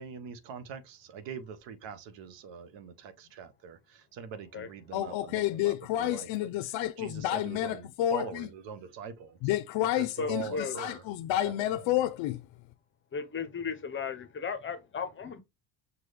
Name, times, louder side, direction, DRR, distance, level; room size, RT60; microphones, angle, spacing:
voice 1, 0.0-9.5 10.0-11.0 11.4-12.0, right 6 dB, 75° right, 0.9 m, -43 dB
voice 2, 4.9-8.5 9.4-12.5, left 13 dB, 85° left, 0.5 m, -30 dB
voice 3, 10.2-10.8 13.1-15.4, left 5 dB, 25° left, 0.5 m, -35 dB
6.0 x 2.2 x 3.3 m
cardioid pair, 160°, 45 cm